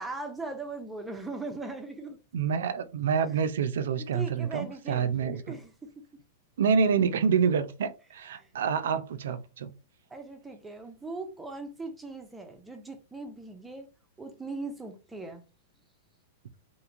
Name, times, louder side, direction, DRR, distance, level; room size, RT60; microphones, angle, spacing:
voice 1, 0.0-2.2 3.3-3.4 4.1-5.9 8.4-8.5 10.1-13.9 14.2-15.4, right 3 dB, 5° right, 0.4 m, -39 dB
voice 2, 2.3-5.5 6.6-9.7, right 6 dB, 80° right, 0.4 m, -27 dB
2.9 x 2.5 x 2.4 m
supercardioid pair, 155°, 0 cm